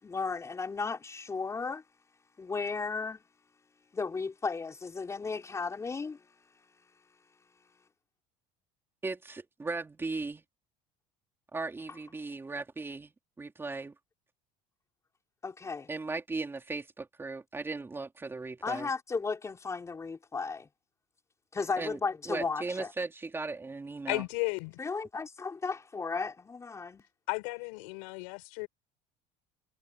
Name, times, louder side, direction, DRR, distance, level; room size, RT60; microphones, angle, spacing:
voice 1, 0.0-1.8 2.4-3.2 3.9-6.3 15.4-15.9 18.6-20.7 21.5-22.9 24.8-27.0, left 4 dB, 15° left, 4.9 m, -35 dB
voice 2, 9.0-10.4 11.5-13.1 13.4-13.9 15.9-18.9 21.8-22.0 22.3-24.2, right 3 dB, 15° right, 3.6 m, -37 dB
voice 3, 24.1-24.8 27.3-28.7, left 32 dB, 85° left, 6.7 m, -34 dB
cardioid pair, 140°, 16 cm